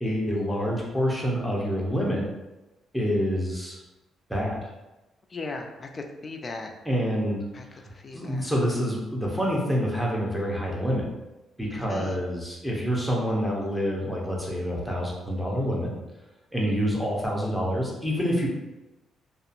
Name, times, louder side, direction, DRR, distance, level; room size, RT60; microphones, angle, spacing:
voice 1, 0.0-2.2 2.9-3.8 4.3-4.7 6.8-7.4 8.1-11.1 11.6-15.9 16.5-18.5, equal, ahead, -3 dB, 0.7 m, -27 dB
voice 2, 5.3-6.7 7.5-7.7 7.9-8.5 11.9-12.2, left 3 dB, 35° left, 3 dB, 0.4 m, -37 dB
2.7 x 2.3 x 2.5 m, 1.0 s
cardioid pair, 90°, 0 cm